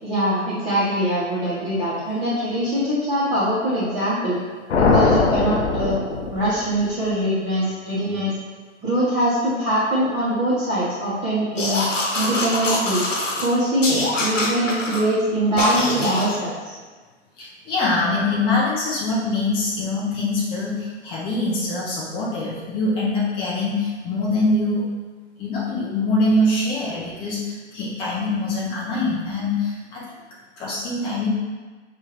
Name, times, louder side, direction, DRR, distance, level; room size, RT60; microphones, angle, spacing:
voice 1, 0.0-4.4 4.7-6.0 6.3-8.3 8.8-11.8 12.1-13.0 13.4-16.7, right 1 dB, 20° right, -11 dB, 1.1 m, -23 dB
sound 1, 4.7-6.9, left 4 dB, 60° left, 0.7 m, -20 dB
sound 2, 11.6-13.5 13.8-15.0 15.6-16.4, left 2 dB, 80° left, 1.0 m, -24 dB
voice 2, 17.4-24.9 25.4-30.0 30.6-31.3, left 2 dB, 15° left, -7 dB, 0.7 m, -24 dB
5.6 x 2.8 x 3.1 m, 1.4 s
figure-of-eight pair, 115°, 37 cm